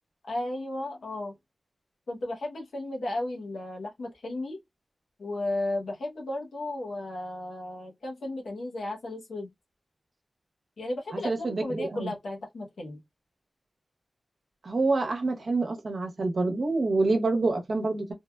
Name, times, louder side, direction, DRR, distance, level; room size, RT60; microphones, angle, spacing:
voice 1, 0.2-1.3 2.1-4.6 5.2-9.5 10.8-13.0, left 1 dB, 85° left, 0.8 m, -34 dB
voice 2, 11.1-12.1 14.6-18.1, right 3 dB, 65° right, 0.8 m, -27 dB
3.3 x 2.2 x 2.2 m
wide cardioid pair, 80°, 0 cm